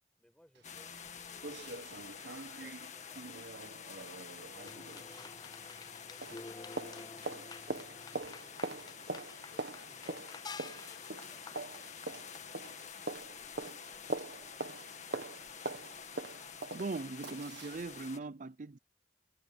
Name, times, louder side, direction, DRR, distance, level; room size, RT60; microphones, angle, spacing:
voice 1, 0.2-3.9 4.3-6.3 9.5-11.0 11.3-11.9 12.3-14.6, equal, 5° left, 7.5 m, -66 dB
sound 1, 0.6-18.2, left 7 dB, 40° left, 2.0 m, -49 dB
sound 2, 0.6-0.7 1.0-1.1 1.4-6.0 6.2-17.8 18.2-18.3, right 2 dB, 75° right, 1.8 m, -44 dB
sound 3, 4.6-12.6, left 4 dB, 25° left, 0.4 m, -50 dB
voice 2, 16.7-18.8, right 3 dB, 45° right, 0.5 m, -40 dB
head